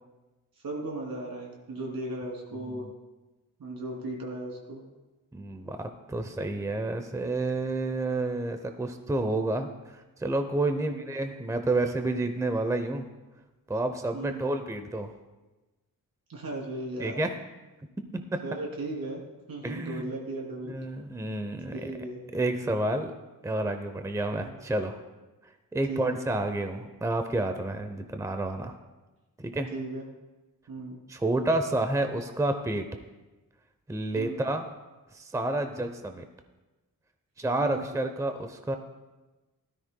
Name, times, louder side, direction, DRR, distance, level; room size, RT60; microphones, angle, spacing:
voice 1, 0.6-2.9 3.6-4.8 10.8-11.1 14.1-14.4 16.3-17.2 18.4-19.2 19.5-20.8 21.7-22.2 24.3-24.5 25.9-26.3 29.7-30.0 30.7-31.0 34.1-34.4 37.6-37.9, right 2 dB, 80° right, -1 dB, 3.0 m, -36 dB
voice 2, 2.5-2.9 5.3-13.1 13.7-15.1 17.0-17.3 18.1-18.4 19.6-20.0 20.7-21.9 22.3-23.1 23.4-25.0 25.7-28.7 29.4-29.7 31.1-32.9 33.9-34.7 35.1-36.2 37.4-38.8, right 2 dB, 10° right, 7 dB, 0.6 m, -30 dB
16.0 x 13.0 x 2.2 m, 1.1 s
wide cardioid pair, 120°, 35 cm